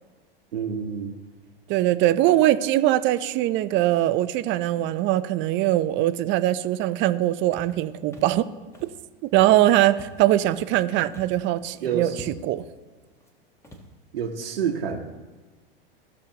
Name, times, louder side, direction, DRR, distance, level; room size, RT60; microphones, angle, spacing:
voice 1, 0.5-1.1 11.8-12.3 14.1-15.0, right 7 dB, 80° right, 0 dB, 1.2 m, -28 dB
voice 2, 1.7-8.5 9.3-12.1 12.4-12.6, right 14 dB, 40° right, 13 dB, 0.6 m, -21 dB
Walk footsteps, 7.5-7.8 8.1-8.4 8.7-9.0 9.3-9.6 9.9-10.8 11.1-11.5 11.8-11.9 12.1-12.6 13.2-13.3 13.6-13.9, equal, 10° left, 1.5 m, -45 dB
16.5 x 6.3 x 2.9 m, 1.3 s
hypercardioid pair, 100°, 29 cm